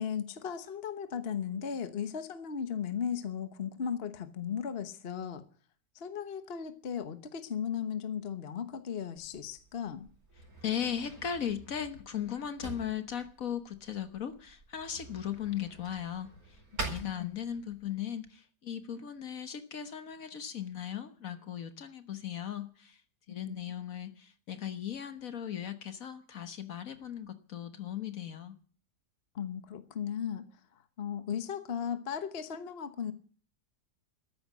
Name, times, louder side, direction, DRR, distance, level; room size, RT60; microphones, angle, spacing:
voice 1, 0.0-5.4 5.9-10.1 17.0-17.4 23.4-23.6 24.0-24.2 29.3-30.5 31.0-33.1, left 7 dB, 40° left, 1.2 m, -36 dB
Drawer open or close, 9.1-17.9, right 2 dB, 60° right, 5.5 m, -46 dB
voice 2, 10.6-16.3 16.8-23.0 23.3-28.6, left 9 dB, 60° left, 1.6 m, -37 dB
13.5 x 10.5 x 8.3 m
omnidirectional pair, 1.7 m